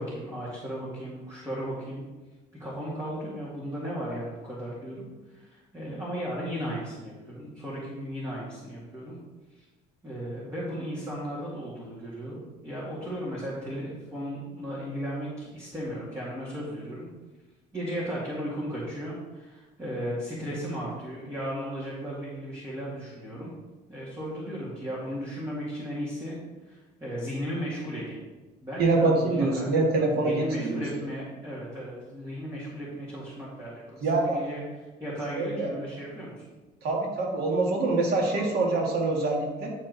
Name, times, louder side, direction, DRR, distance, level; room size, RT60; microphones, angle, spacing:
voice 1, 0.0-2.0 2.6-9.2 9.6-9.7 10.0-17.1 17.7-23.5 23.9-26.4 26.7-28.2 28.6-34.6 35.0-36.5, equal, 15° right, -7 dB, 2.2 m, -35 dB
voice 2, 28.8-30.8 34.0-34.4 35.4-35.7 36.8-39.7, right 3 dB, 70° right, 0 dB, 1.9 m, -25 dB
9.8 x 4.4 x 4.1 m, 1.2 s
cardioid pair, 110°, 17 cm